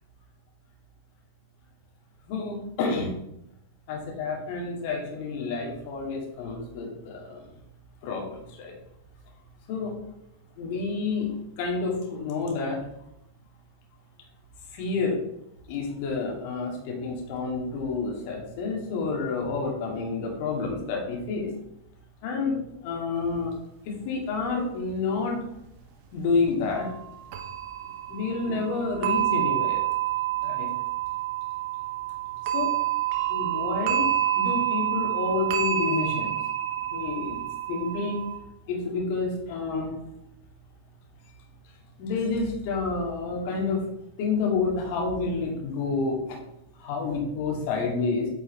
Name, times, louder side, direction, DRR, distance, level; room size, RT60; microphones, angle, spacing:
voice 1, 2.3-3.2 3.9-7.4 8.0-8.8 9.7-9.9 10.6-12.8 14.7-15.2 15.7-21.5 22.2-22.6 22.8-23.5 23.9-25.4 26.1-26.9 28.1-29.8 30.4-30.7 32.5-32.7 33.3-34.1 34.4-36.4 36.9-37.4 37.7-38.2 38.7-39.9 42.0-43.8 44.2-46.4 46.8-48.3, left 4 dB, 45° left, 0 dB, 2.3 m, -29 dB
sound 1, 24.3-24.4 26.4-27.1 27.3-38.4, right 12 dB, 45° right, 1.0 m, -28 dB
9.5 x 5.3 x 3.4 m, 0.82 s
figure-of-eight pair, 90°, 0 cm